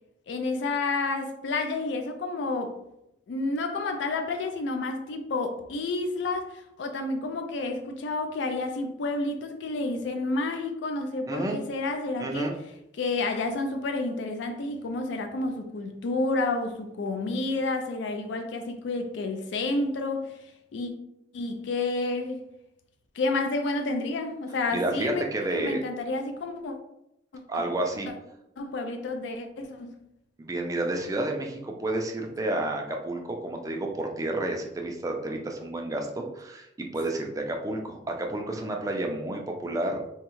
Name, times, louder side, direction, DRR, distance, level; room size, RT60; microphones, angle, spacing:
voice 1, 0.3-2.8 3.3-12.5 13.0-20.4 20.7-20.9 21.3-22.4 23.1-25.2 25.5-26.8 27.5-27.6 28.6-30.0, left 2 dB, 70° left, 5 dB, 0.4 m, -30 dB
voice 2, 11.3-11.6 12.2-12.5 24.7-25.8 27.5-28.1 30.4-40.1, right 1 dB, 20° right, 2 dB, 0.4 m, -30 dB
3.5 x 2.0 x 3.0 m, 0.84 s
head